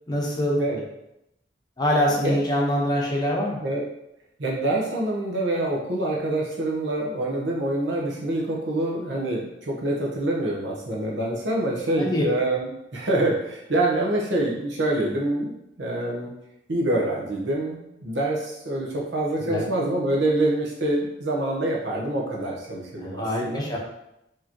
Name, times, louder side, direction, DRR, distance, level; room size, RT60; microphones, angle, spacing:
voice 1, 0.1-0.6 1.8-3.6 12.0-12.2 19.4-19.6 23.0-23.8, left 1 dB, 20° left, -2 dB, 0.8 m, -24 dB
voice 2, 4.4-16.3 16.7-23.6, right 1 dB, 70° right, -2 dB, 1.0 m, -26 dB
4.8 x 3.1 x 2.9 m, 0.84 s
head